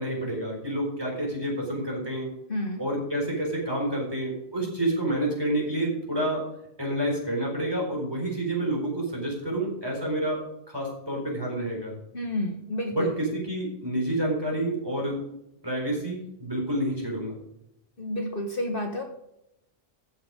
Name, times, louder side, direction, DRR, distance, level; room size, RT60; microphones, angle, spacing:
voice 1, 0.0-2.3 2.8-6.4 6.8-10.4 10.7-12.0 12.9-15.2 15.6-17.4, right 1 dB, 20° right, -1 dB, 4.6 m, -28 dB
voice 2, 2.5-2.8 12.1-13.2 18.0-19.0, left 1 dB, 50° left, 3 dB, 1.5 m, -30 dB
14.5 x 7.2 x 5.2 m, 0.81 s
omnidirectional pair, 1.2 m